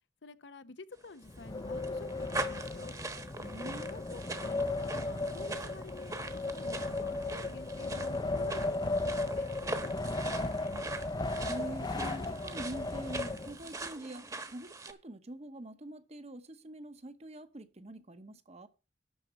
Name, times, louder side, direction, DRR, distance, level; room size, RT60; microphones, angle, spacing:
voice 1, 0.2-3.0 3.6-10.8, left 3 dB, 80° left, 0.8 m, -50 dB
sound 1, 1.1-14.9, right 3 dB, 20° right, 1.2 m, -43 dB
Wind, 1.2-13.9, left 2 dB, 25° left, 0.5 m, -36 dB
voice 2, 3.4-3.9 11.5-18.7, right 1 dB, 35° right, 0.9 m, -45 dB
12.0 x 4.2 x 8.0 m
head